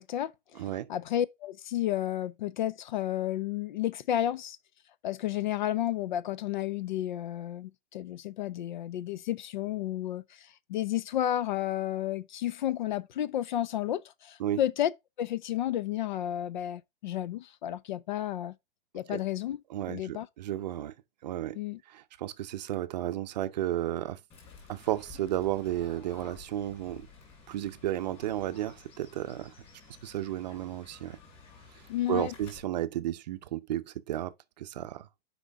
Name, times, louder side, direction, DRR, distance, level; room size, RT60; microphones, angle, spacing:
voice 1, 0.0-0.6 0.9-4.6 5.0-14.9 15.2-18.5 18.9-19.6 19.9-20.3 21.5-21.8 31.9-32.3, left 12 dB, 50° left, 0.5 m, -32 dB
voice 2, 0.6-0.9 14.4-14.6 19.1-19.2 19.7-20.9 21.2-21.6 21.9-24.2 24.7-27.1 27.5-29.5 30.0-31.2 32.1-35.1, right 13 dB, 45° right, 0.6 m, -33 dB
Fowl / Bird, 24.3-32.6, left 5 dB, 20° left, 3.3 m, -53 dB
6.3 x 5.0 x 3.4 m
hypercardioid pair, 165°, 30 cm